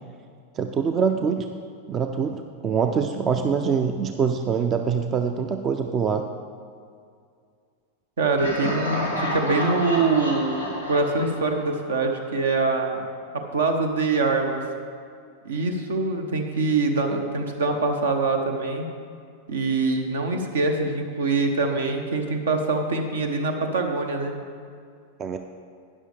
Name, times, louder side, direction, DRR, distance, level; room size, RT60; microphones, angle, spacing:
voice 1, 0.5-1.5 1.9-6.3 25.2-25.4, right 6 dB, 25° right, 7 dB, 0.5 m, -24 dB
voice 2, 8.2-13.1 13.3-14.6 15.4-18.9 19.5-24.3, right 3 dB, 65° right, 5 dB, 1.1 m, -24 dB
Laughter, 8.4-12.2, left 1 dB, 90° right, 2.4 m, -30 dB
12.5 x 9.9 x 3.4 m, 2.2 s
figure-of-eight pair, 90°, 0 cm